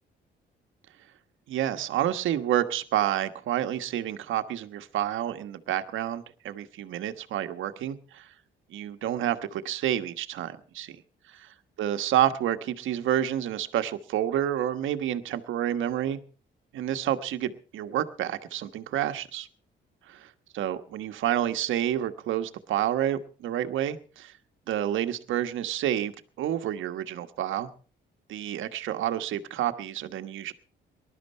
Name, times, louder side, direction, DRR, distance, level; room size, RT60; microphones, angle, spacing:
voice 1, 1.5-8.3 8.7-11.0 11.8-16.2 16.7-19.5 20.1-20.2 20.5-24.3 24.7-27.7 28.3-30.5, right 11 dB, 80° right, 9 dB, 1.3 m, -29 dB
20.0 x 12.0 x 4.3 m, 0.39 s
cardioid pair, 90°, 20 cm